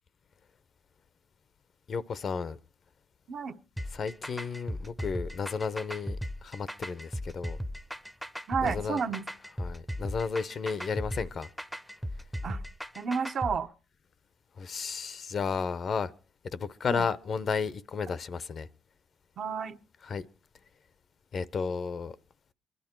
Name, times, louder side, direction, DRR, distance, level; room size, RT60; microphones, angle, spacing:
voice 1, 1.9-2.6 3.9-6.2 6.4-7.6 8.6-9.0 9.6-11.5 14.6-16.1 16.5-18.7 20.0-20.3 21.3-22.2, left 5 dB, 50° left, 0.7 m, -33 dB
sound 1, 3.8-13.6, equal, ahead, 0.7 m, -37 dB
voice 2, 8.5-9.3 12.4-12.6 13.0-13.7 16.9-17.1 19.4-19.8, right 6 dB, 55° right, 1.0 m, -31 dB
22.5 x 11.0 x 4.5 m
cardioid pair, 90°, 0 cm